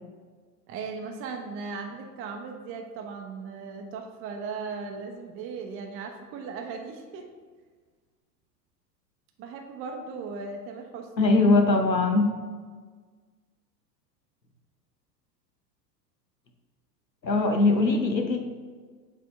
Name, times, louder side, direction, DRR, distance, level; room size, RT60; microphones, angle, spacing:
voice 1, 0.7-7.3 9.4-11.3, right 4 dB, 25° right, 4 dB, 0.6 m, -37 dB
voice 2, 11.2-12.3 17.2-18.4, left 2 dB, 90° left, 5 dB, 0.9 m, -21 dB
7.6 x 3.6 x 4.5 m, 1.5 s
figure-of-eight pair, 90°, 50 cm